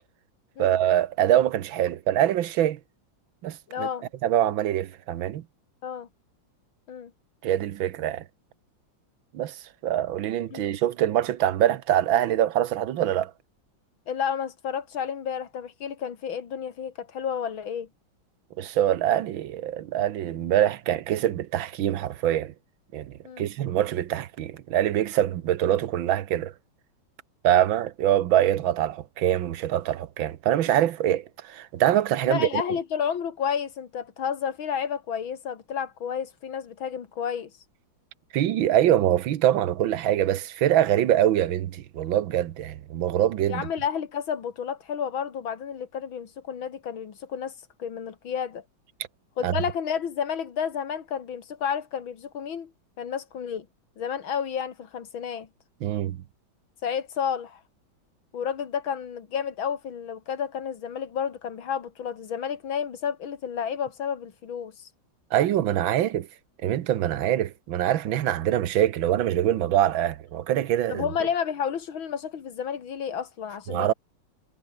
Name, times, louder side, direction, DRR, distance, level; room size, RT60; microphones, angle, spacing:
voice 1, 0.6-2.8 3.4-3.9 4.2-5.4 7.4-8.2 9.3-9.6 9.8-13.3 18.6-22.5 22.9-26.5 27.4-32.6 38.3-43.7 49.4-49.5 55.8-56.2 65.3-66.3 66.6-71.1 73.7-73.9, right 11 dB, 80° right, 1.8 m, -24 dB
voice 2, 3.7-4.1 5.8-6.1 6.9-7.1 10.5-10.7 14.1-17.9 23.2-23.5 32.2-37.5 43.5-47.5 47.8-48.6 49.4-52.7 53.0-53.7 54.0-55.5 56.8-57.6 58.3-64.9 70.9-73.9, left 7 dB, 85° left, 2.7 m, -31 dB
omnidirectional pair, 2.1 m